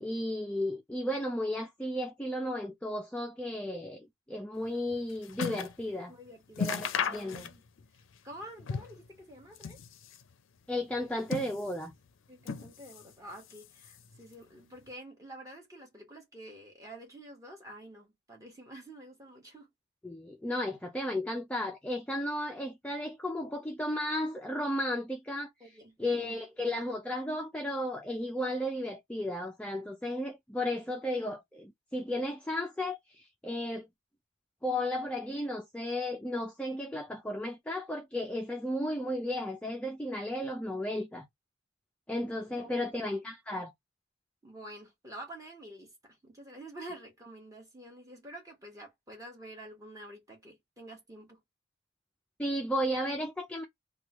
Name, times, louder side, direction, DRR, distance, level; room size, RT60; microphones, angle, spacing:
voice 1, 0.0-6.1 6.6-7.5 10.7-11.9 20.0-25.5 26.0-33.8 34.6-41.3 42.1-43.7 52.4-53.7, left 1 dB, 5° left, 0.3 m, -34 dB
sound 1, 4.6-5.8 6.2-6.3 6.5-7.8 8.1-9.1 9.4-10.3 10.9-11.9 12.4-13.1 13.4-14.2 14.9-15.0, left 6 dB, 70° left, 0.4 m, -36 dB
voice 2, 6.1-7.6 8.2-9.8 12.3-19.7 25.6-26.4 42.6-43.1 44.4-51.4, right 1 dB, 15° right, 1.2 m, -48 dB
3.0 x 2.2 x 2.9 m
head